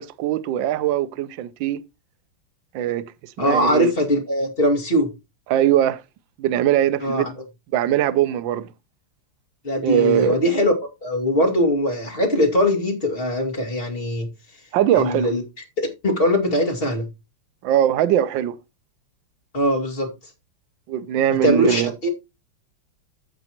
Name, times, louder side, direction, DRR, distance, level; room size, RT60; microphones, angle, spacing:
voice 1, 0.0-1.8 2.7-3.9 5.5-6.0 6.4-7.3 7.7-8.7 9.8-10.4 14.7-15.3 17.6-18.6 20.9-21.9, right 11 dB, 70° right, 1.4 m, -21 dB
voice 2, 3.4-5.1 7.0-7.3 9.6-10.7 11.0-14.3 14.9-15.4 15.8-17.1 19.5-20.1 21.4-22.1, equal, 25° left, 2.4 m, -21 dB
15.0 x 5.3 x 3.0 m
omnidirectional pair, 2.4 m